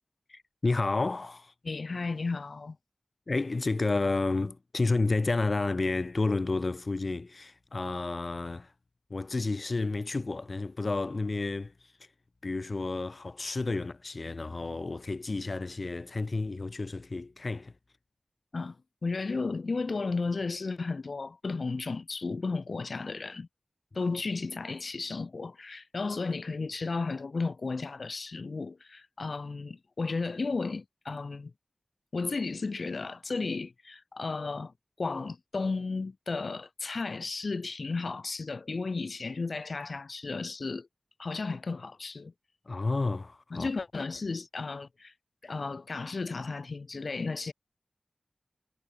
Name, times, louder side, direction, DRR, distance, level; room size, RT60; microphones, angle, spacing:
voice 1, 0.3-1.5 3.3-8.7 9.1-11.7 12.4-17.7 42.7-43.7, left 3 dB, 60° left, 4.1 m, -31 dB
voice 2, 1.6-2.8 18.5-18.8 19.0-23.5 23.9-31.5 32.1-40.9 41.2-42.3 43.5-45.1 45.4-47.5, left 4 dB, 85° left, 4.0 m, -34 dB
wide cardioid pair, 60°, 0 cm